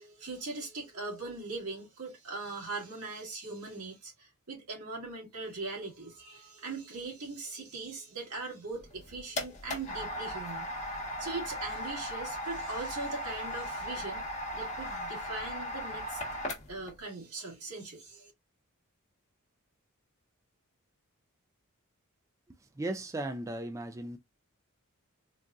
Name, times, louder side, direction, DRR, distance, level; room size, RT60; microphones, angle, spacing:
voice 1, 0.0-10.7 11.2-14.2 14.5-16.4 16.7-18.3, right 3 dB, 85° right, 2.0 m, -40 dB
sound 1, 8.8-16.9, equal, 35° left, 1.1 m, -37 dB
voice 2, 22.8-24.2, right 1 dB, 15° right, 0.3 m, -36 dB
3.9 x 2.4 x 2.3 m
head